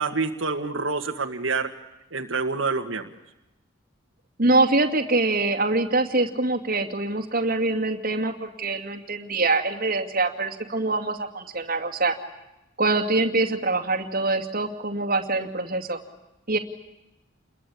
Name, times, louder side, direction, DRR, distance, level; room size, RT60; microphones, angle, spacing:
voice 1, 0.0-1.7 2.1-3.1, right 4 dB, 75° right, 4 dB, 1.9 m, -27 dB
voice 2, 4.4-12.1 12.8-16.0 16.5-16.6, right 2 dB, 45° right, 5 dB, 2.3 m, -24 dB
29.5 x 21.5 x 8.6 m, 0.95 s
head